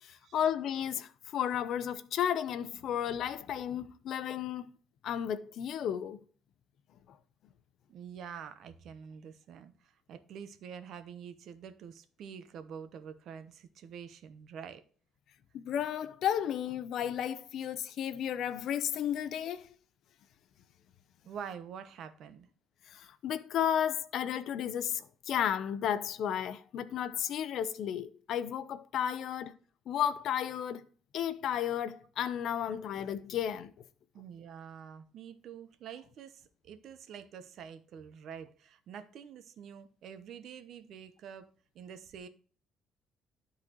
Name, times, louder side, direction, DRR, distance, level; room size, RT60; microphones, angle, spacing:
voice 1, 0.0-4.7 5.0-6.2 15.5-19.7 22.9-29.6 29.9-30.8 31.1-33.7, left 9 dB, 60° left, 0.7 m, -33 dB
voice 2, 7.9-14.8 21.2-22.5 34.1-41.5 41.7-42.3, right 7 dB, 60° right, 0.9 m, -47 dB
12.0 x 4.1 x 3.0 m
cardioid pair, 130°, 0 cm